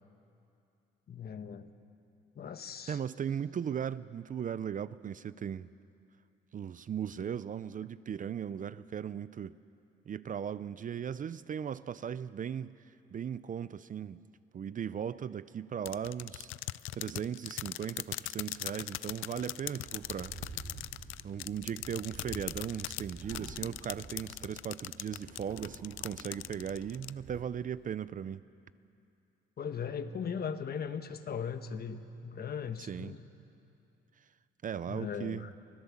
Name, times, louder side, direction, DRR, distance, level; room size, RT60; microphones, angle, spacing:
voice 1, 1.1-1.7 2.3-3.0 29.6-33.2 34.9-35.5, left 7 dB, 50° left, 1.2 m, -38 dB
voice 2, 2.9-5.7 6.5-9.6 10.1-12.7 13.1-14.2 14.5-20.6 21.2-28.4 32.8-33.1 34.6-35.5, right 8 dB, 40° right, 0.5 m, -38 dB
sound 1, 15.9-27.1, left 17 dB, 90° left, 0.4 m, -40 dB
sound 2, 19.8-24.6 25.0-27.4, right 4 dB, 60° right, 3.6 m, -48 dB
24.0 x 16.5 x 7.3 m
cardioid pair, 90°, 20 cm